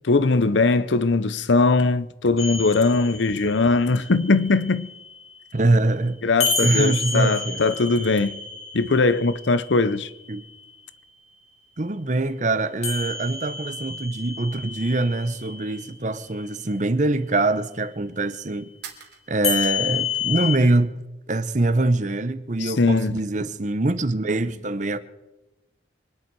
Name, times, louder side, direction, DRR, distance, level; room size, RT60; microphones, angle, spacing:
voice 1, 0.1-4.9 6.2-8.4 8.7-10.1 22.6-23.2, left 3 dB, 80° left, 0.7 m, -20 dB
sound 1, 2.4-5.3 6.4-10.5 12.8-15.9 19.4-20.6, left 5 dB, 35° left, 2.3 m, -30 dB
voice 2, 5.5-6.2 6.6-7.6 10.3-10.4 11.8-18.7 19.3-20.9 21.3-25.0, right 2 dB, 40° right, 0.8 m, -23 dB
sound 2, 18.8-20.7 21.0-21.9, right 7 dB, 70° right, 3.1 m, -46 dB
25.0 x 10.5 x 4.7 m
head